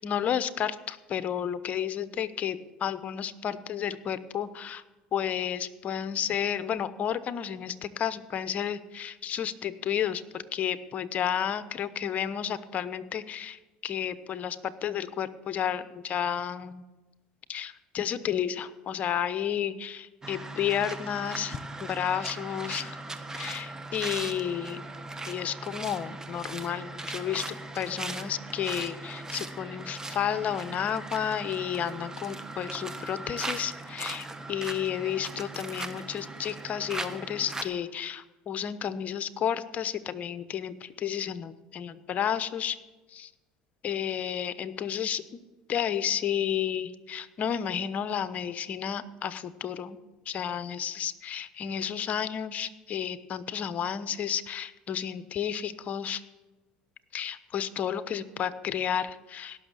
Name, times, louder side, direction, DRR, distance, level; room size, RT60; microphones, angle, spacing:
voice 1, 0.0-4.8 5.1-16.8 17.5-23.0 23.3-24.8 25.2-42.8 43.1-43.3 43.8-45.4 45.7-50.0 50.3-56.2 57.1-59.6, left 9 dB, 45° left, 14 dB, 0.9 m, -32 dB
sound 1, 20.2-37.6, right 2 dB, 15° right, 1.2 m, -39 dB
17.0 x 6.4 x 8.3 m, 1.1 s
hypercardioid pair, 80°, 4 cm